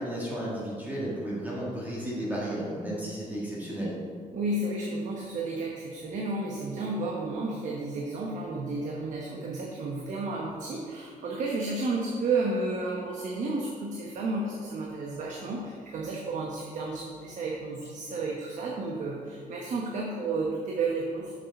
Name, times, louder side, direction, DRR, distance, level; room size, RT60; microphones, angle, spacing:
voice 1, 0.0-4.0, right 1 dB, 10° right, -6 dB, 1.7 m, -33 dB
voice 2, 4.3-21.3, right 3 dB, 65° right, -2 dB, 1.0 m, -32 dB
7.1 x 6.5 x 5.3 m, 2.1 s
wide cardioid pair, 175°, 14 cm